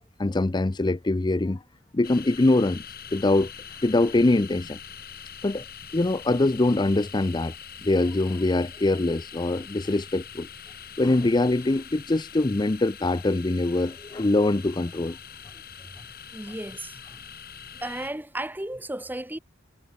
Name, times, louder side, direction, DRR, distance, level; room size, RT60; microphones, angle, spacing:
voice 1, 0.2-1.6 1.9-2.8 3.1-3.5 3.8-4.8 5.4-5.6 5.9-7.5 7.8-10.5 11.0-15.2, left 2 dB, 20° left, 0.5 m, -23 dB
sound 1, 2.0-18.1, left 8 dB, 50° left, 7.8 m, -43 dB
voice 2, 16.3-17.0 17.8-19.4, right 1 dB, 10° right, 1.4 m, -34 dB
head